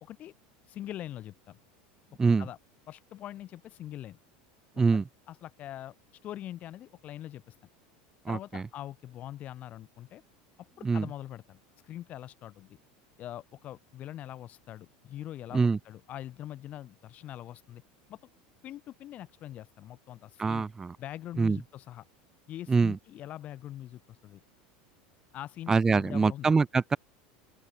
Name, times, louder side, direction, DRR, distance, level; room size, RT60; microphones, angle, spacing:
voice 1, 0.0-0.3 0.6-1.6 2.4-2.6 2.9-4.2 4.9-7.6 8.3-10.2 10.8-12.7 13.2-17.8 18.1-18.2 18.6-20.6 21.0-22.0 22.5-24.4 25.3-26.5, left 12 dB, 35° left, 1.8 m, -43 dB
voice 2, 8.2-8.6 10.8-11.1 15.5-15.8 20.4-21.0 21.4-21.6 22.7-23.0 25.7-27.0, right 4 dB, 15° right, 0.6 m, -24 dB
open air
supercardioid pair, 150°, 4 cm